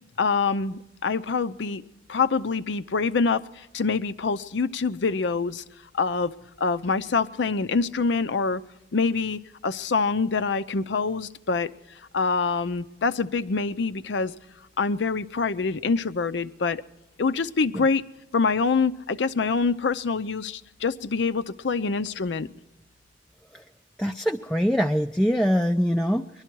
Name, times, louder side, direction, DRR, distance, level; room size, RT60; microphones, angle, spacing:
voice 1, 0.2-1.8 2.1-5.6 5.9-8.6 8.9-11.7 12.1-14.3 14.8-16.8 17.2-18.0 18.3-22.5, left 4 dB, 70° left, 0.6 m, -25 dB
voice 2, 24.0-26.4, equal, 5° left, 0.4 m, -24 dB
21.0 x 12.0 x 4.5 m
head